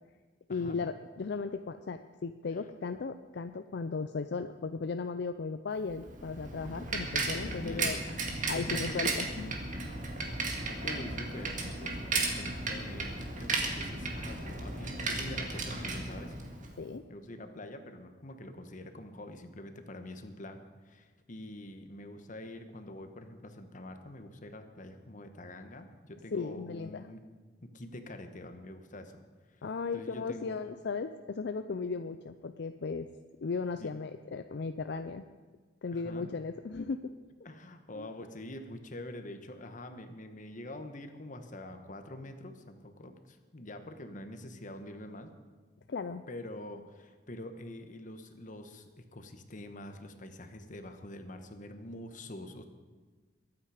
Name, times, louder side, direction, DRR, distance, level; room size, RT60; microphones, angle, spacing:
voice 1, 0.5-8.0 8.5-9.6 16.8-17.0 26.3-27.0 29.6-33.1 33.4-35.2 35.8-37.1 37.9-38.1 45.9-46.2, left 4 dB, 65° left, 9 dB, 0.5 m, -36 dB
Bicycle, 5.9-16.8, right 3 dB, 45° right, 1.9 m, -35 dB
voice 2, 7.4-8.0 8.6-8.9 10.7-16.3 17.1-27.2 27.6-29.2 29.9-30.6 33.8-33.9 35.9-36.3 37.4-45.3 46.3-52.6, left 1 dB, 45° left, 7 dB, 1.3 m, -45 dB
22.0 x 8.9 x 5.0 m, 1.3 s
head